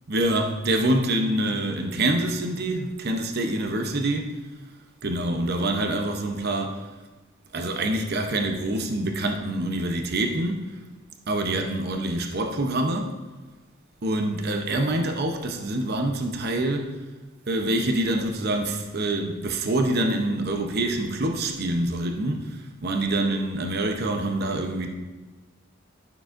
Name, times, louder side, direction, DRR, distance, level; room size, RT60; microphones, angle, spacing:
voice 1, 0.1-4.4 5.0-6.9 7.5-10.7 11.3-13.1 14.0-16.9 17.5-24.9, right 1 dB, 50° right, 0.7 m, -26 dB
12.5 x 6.8 x 2.6 m
head